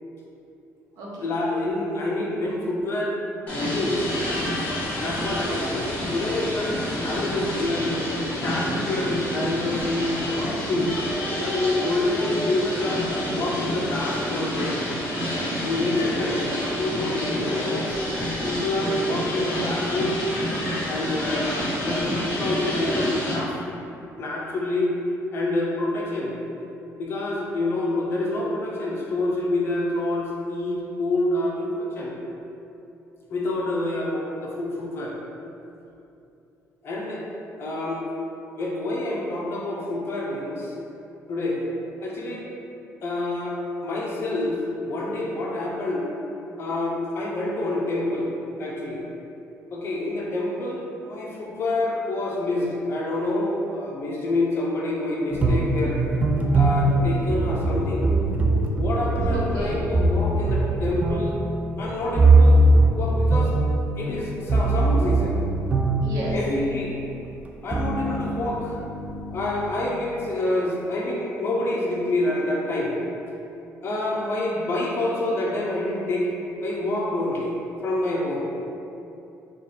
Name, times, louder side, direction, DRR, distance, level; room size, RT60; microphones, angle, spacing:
voice 1, 1.2-3.2 3.5-4.2 5.0-6.8 7.0-8.1 8.4-10.9 11.4-14.6 15.6-18.0 18.4-20.2 20.8-21.5 21.8-23.6 24.2-24.9 25.3-26.4 26.9-32.2 33.3-35.2 36.8-37.3 37.6-38.1 38.5-40.7 41.3-41.7 42.0-42.5 43.0-46.1 46.6-48.3 48.6-49.0 49.7-56.0 56.5-58.0 58.8-61.4 61.8-62.6 63.0-63.5 64.0-65.4 66.3-67.0 67.6-68.8 69.3-72.9 73.8-77.6 77.8-78.4, left 2 dB, 45° left, -3 dB, 0.8 m, -27 dB
sound 1, 3.5-23.4, equal, 25° left, 1.4 m, -28 dB
sound 2, 55.3-66.8 67.5-69.9, right 2 dB, 25° right, 0.4 m, -21 dB
voice 2, 59.3-59.8 66.0-66.4, right 1 dB, 85° right, -5 dB, 1.0 m, -32 dB
4.5 x 2.5 x 4.1 m, 2.7 s
cardioid pair, 140°, 6 cm